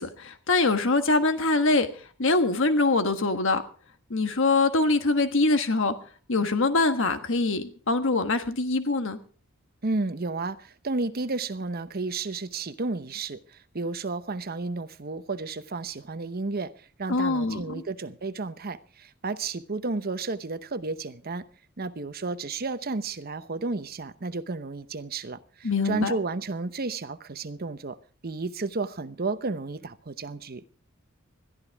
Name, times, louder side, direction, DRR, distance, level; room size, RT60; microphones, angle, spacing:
voice 1, 0.0-1.9 2.2-3.6 4.1-5.9 6.3-9.2 17.1-17.8 25.6-26.1, left 3 dB, 65° left, 1.4 m, -24 dB
voice 2, 9.8-16.7 17.0-21.4 21.8-28.0 28.2-30.6, right 3 dB, 45° right, 0.9 m, -32 dB
21.0 x 13.5 x 3.5 m
head